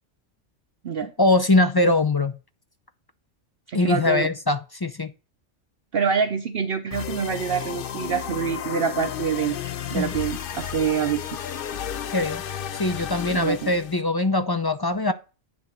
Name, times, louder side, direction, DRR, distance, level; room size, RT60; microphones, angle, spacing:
voice 1, 1.2-2.4 3.7-5.1 9.9-10.1 12.1-12.4 12.7-15.1, left 2 dB, 30° left, 0.4 m, -22 dB
voice 2, 3.7-4.3 5.9-9.6 9.9-11.2 13.3-13.7, right 6 dB, 55° right, 0.9 m, -26 dB
sound 1, 6.9-14.0, left 9 dB, 55° left, 0.7 m, -33 dB
9.6 x 3.8 x 7.2 m
omnidirectional pair, 1.2 m